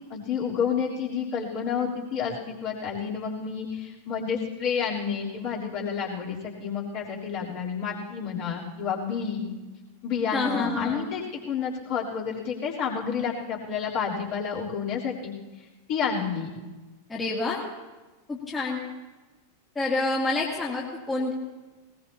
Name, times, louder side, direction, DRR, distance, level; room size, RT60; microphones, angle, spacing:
voice 1, 0.1-9.5 10.0-16.5, left 6 dB, 40° left, -4 dB, 3.4 m, -30 dB
voice 2, 10.3-11.1 17.1-17.6 18.3-18.8 19.8-21.3, left 2 dB, 15° left, -4 dB, 2.2 m, -28 dB
19.5 x 19.5 x 2.8 m, 1.2 s
figure-of-eight pair, 90°, 0 cm